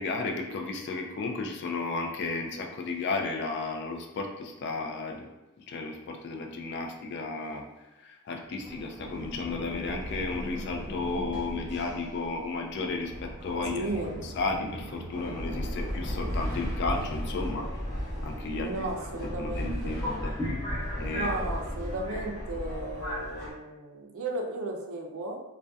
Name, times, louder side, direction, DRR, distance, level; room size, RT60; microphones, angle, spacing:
voice 1, 0.0-5.2 5.7-7.7 8.0-13.9 14.2-17.7 18.2-18.9 19.2-20.3 21.0-21.3, left 3 dB, 50° left, 2 dB, 0.3 m, -33 dB
Run, 8.6-18.3, equal, 20° right, 1.0 m, -41 dB
voice 2, 13.7-14.3 18.6-20.0 21.1-25.4, right 2 dB, 70° right, 2 dB, 0.4 m, -35 dB
Subway metro underground, 15.1-23.5, equal, 15° left, 0.8 m, -34 dB
2.6 x 2.1 x 2.3 m, 1.0 s
head